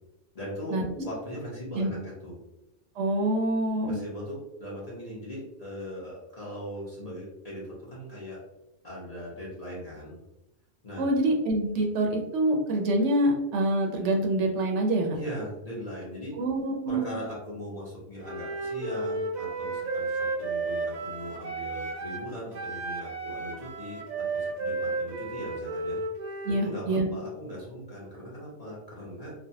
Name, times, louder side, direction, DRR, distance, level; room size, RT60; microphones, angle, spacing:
voice 1, 0.3-2.3 3.9-8.4 8.8-10.2 10.8-11.1 15.1-16.3 16.9-26.0 26.5-29.3, equal, 35° left, -6 dB, 0.8 m, -39 dB
voice 2, 3.0-4.0 11.0-15.2 16.4-17.2 26.4-27.1, right 1 dB, 75° right, 1 dB, 0.9 m, -26 dB
Wind instrument woodwind instrument, 18.2-22.3 22.5-26.7, right 3 dB, 60° right, 0.4 m, -33 dB
3.3 x 2.1 x 2.6 m, 0.93 s
omnidirectional pair, 1.2 m